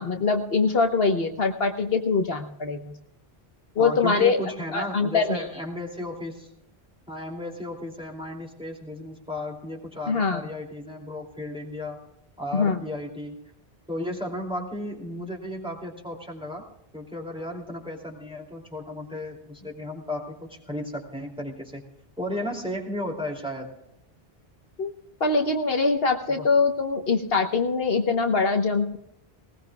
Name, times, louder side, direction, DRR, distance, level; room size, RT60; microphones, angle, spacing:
voice 1, 0.0-2.9 3.8-4.4 4.7-5.4 10.1-10.4 12.5-12.8 24.8-24.9 25.2-29.0, left 4 dB, 70° left, 4 dB, 1.4 m, -23 dB
voice 2, 3.8-6.5 7.1-12.0 12.4-13.4 13.9-16.7 16.9-21.8 22.2-23.7 26.3-26.5, left 1 dB, 5° right, -1 dB, 2.7 m, -34 dB
20.0 x 18.5 x 2.3 m, 0.79 s
omnidirectional pair, 1.1 m